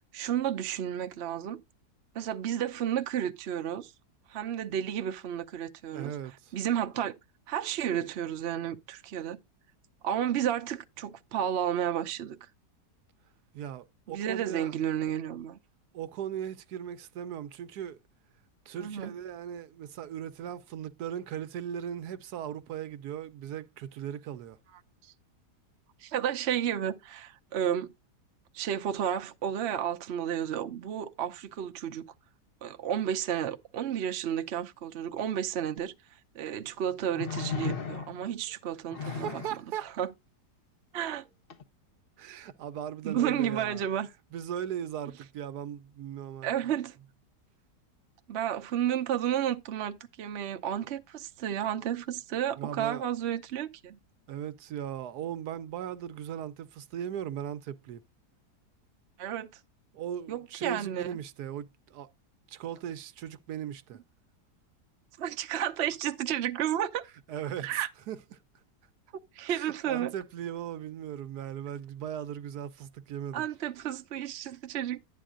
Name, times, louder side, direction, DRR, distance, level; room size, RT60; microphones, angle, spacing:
voice 1, 0.1-1.6 2.1-3.9 4.3-6.1 6.5-7.1 7.5-9.4 10.0-12.4 14.1-15.6 18.8-19.1 25.0-25.1 26.0-27.9 28.5-32.0 32.6-35.9 36.3-39.4 39.8-40.1 40.9-41.2 43.0-44.1 46.4-47.0 48.3-54.0 59.2-59.5 60.3-61.2 65.2-67.0 67.6-67.9 69.3-70.1 73.3-75.0, right 10 dB, 55° right, 0.8 m, -32 dB
voice 2, 5.9-6.5 13.5-14.7 15.9-18.0 18.7-24.6 39.0-39.9 42.2-43.8 44.3-46.5 52.6-53.1 54.3-58.0 59.9-62.1 62.5-64.0 67.3-68.2 69.5-73.5, right 9 dB, 75° right, 1.2 m, -38 dB
sound 1, 35.8-35.9 37.1-38.3 38.9-39.6 41.5-41.6, left 6 dB, 40° left, 0.9 m, -35 dB
11.0 x 8.8 x 2.5 m
omnidirectional pair, 1.8 m